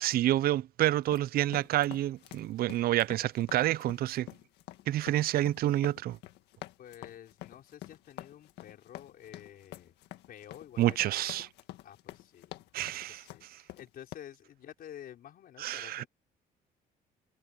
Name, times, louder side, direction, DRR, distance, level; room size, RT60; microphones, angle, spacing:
voice 1, 0.0-4.3 4.9-6.2 10.8-11.5 12.7-13.2 15.6-16.0, right 14 dB, 60° right, 0.6 m, -28 dB
sound 1, 1.0-14.2, left 15 dB, 85° left, 1.7 m, -48 dB
voice 2, 6.8-9.9 10.3-10.8 11.1-11.5 11.8-12.5 12.9-16.1, left 10 dB, 60° left, 5.0 m, -50 dB
cardioid pair, 110°, 17 cm